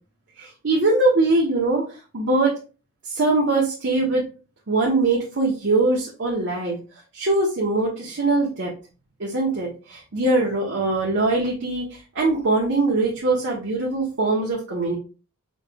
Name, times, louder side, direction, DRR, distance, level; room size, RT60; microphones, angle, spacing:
voice 1, 0.4-1.8 2.1-2.6 3.0-4.3 4.7-6.8 7.1-8.7 9.2-15.0, right 2 dB, 55° right, -3 dB, 0.8 m, -22 dB
5.3 x 3.1 x 2.2 m, 0.34 s
head